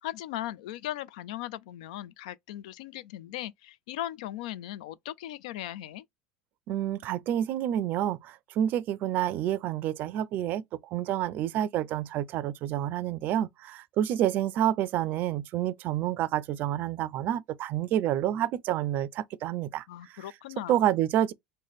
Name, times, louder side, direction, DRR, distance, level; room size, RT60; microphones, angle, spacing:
voice 1, 0.0-6.1 19.9-20.8, left 13 dB, 85° left, 0.3 m, -38 dB
voice 2, 6.7-10.6 10.9-20.2 20.7-21.3, right 11 dB, 55° right, 0.4 m, -28 dB
3.1 x 2.2 x 4.0 m
supercardioid pair, 105°, 4 cm